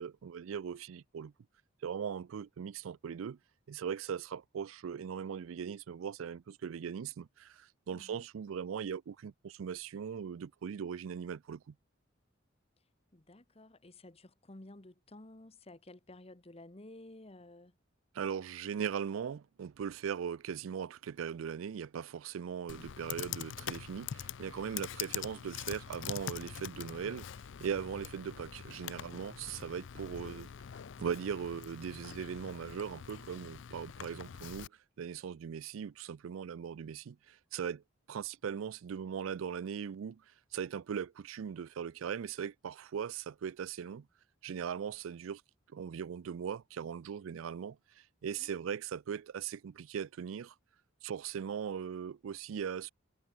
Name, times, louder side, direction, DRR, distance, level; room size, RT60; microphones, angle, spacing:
voice 1, 0.0-1.3 1.8-3.4 3.7-11.7 18.1-27.3 27.6-30.5 31.0-34.7 35.0-37.8 38.1-40.2 40.5-44.1 44.4-45.4 45.7-50.5 51.0-52.9, right 7 dB, 85° right, 0.4 m, -39 dB
voice 2, 7.9-8.2 13.1-17.8 24.8-24.9 48.4-48.6, left 1 dB, 30° left, 1.2 m, -53 dB
Computer keyboard, 22.7-34.7, left 9 dB, 65° left, 0.4 m, -44 dB
head